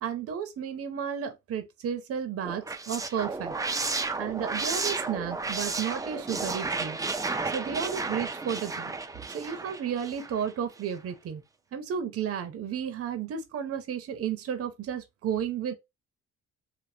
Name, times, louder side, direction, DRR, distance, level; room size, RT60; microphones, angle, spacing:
voice 1, 0.0-3.6 4.2-7.0 7.5-8.9 9.3-11.4 11.7-15.7, right 8 dB, 50° right, 0.6 m, -33 dB
sound 1, 2.4-10.5, right 3 dB, 10° right, 0.3 m, -33 dB
3.3 x 2.1 x 2.7 m
cardioid pair, 90°, 30 cm